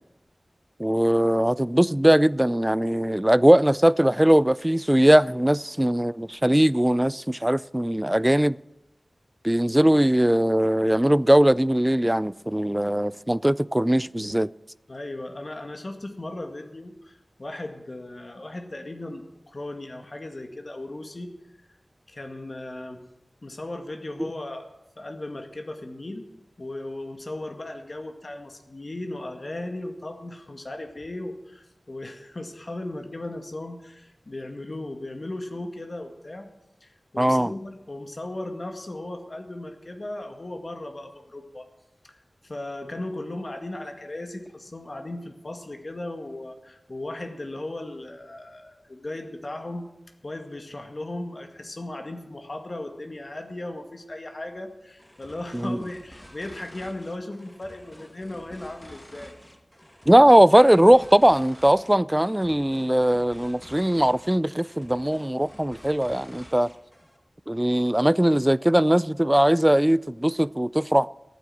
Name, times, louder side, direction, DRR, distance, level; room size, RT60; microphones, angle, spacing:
voice 1, 0.8-8.6 9.4-14.5 37.2-37.5 55.5-55.8 60.1-66.7 67.5-71.1, right 1 dB, 15° right, 0.4 m, -20 dB
voice 2, 14.9-21.7 22.1-23.0 23.4-24.7 25.0-26.3 26.6-36.5 36.8-41.7 42.0-49.9 50.2-59.3, left 1 dB, 55° left, 2.0 m, -37 dB
sound 1, 55.0-67.2, equal, 15° left, 1.8 m, -49 dB
14.0 x 9.3 x 7.7 m
wide cardioid pair, 45°, 0 cm